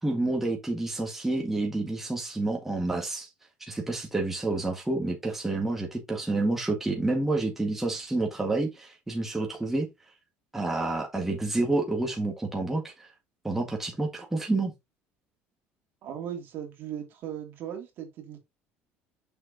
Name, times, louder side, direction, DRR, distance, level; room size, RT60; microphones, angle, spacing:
voice 1, 0.0-3.3 3.7-9.9 10.5-12.9 13.4-14.7, right 2 dB, 5° right, 1.9 m, -29 dB
voice 2, 16.0-18.4, right 9 dB, 50° right, 2.5 m, -38 dB
6.6 x 6.2 x 2.9 m
cardioid pair, 145°, 5 cm